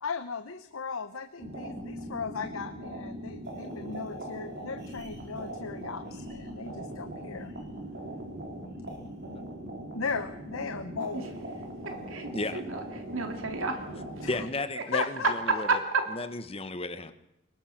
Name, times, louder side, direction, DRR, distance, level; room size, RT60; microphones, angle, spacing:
voice 1, 0.0-7.5 9.9-11.3 14.2-14.5 14.9-15.6, left 5 dB, 85° left, 9 dB, 0.9 m, -37 dB
sound 1, 1.4-14.5, right 1 dB, 55° right, 4.2 m, -40 dB
voice 2, 11.8-12.8 13.1-13.8 14.2-14.3 15.7-16.1, right 4 dB, 75° right, 5 dB, 3.1 m, -31 dB
voice 3, 14.3-15.8 16.1-17.1, left 2 dB, 30° left, 10 dB, 1.3 m, -34 dB
23.0 x 20.0 x 6.0 m, 0.85 s
head